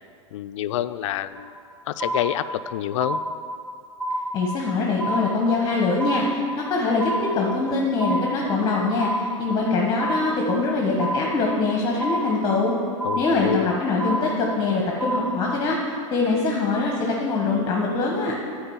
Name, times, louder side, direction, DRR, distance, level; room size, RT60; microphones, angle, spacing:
voice 1, 0.3-1.5 1.9-3.2 13.0-13.7, left 13 dB, 65° left, 13 dB, 0.4 m, -27 dB
sound 1, 1.4-1.7 2.0-2.7 3.0-3.7 4.0-4.7 5.0-5.7 6.0-6.7 7.0-7.7 8.0-8.7 9.0-9.7 10.0-10.7 11.0-11.7 12.0-12.7 13.0-13.7 14.0-14.7 15.0-15.7, right 1 dB, 15° right, 1.9 m, -29 dB
voice 2, 4.3-12.7 13.2-15.8 16.1-18.3, left 3 dB, 25° left, -1 dB, 1.3 m, -23 dB
8.7 x 4.8 x 7.2 m, 2.3 s
hypercardioid pair, 105°, 17 cm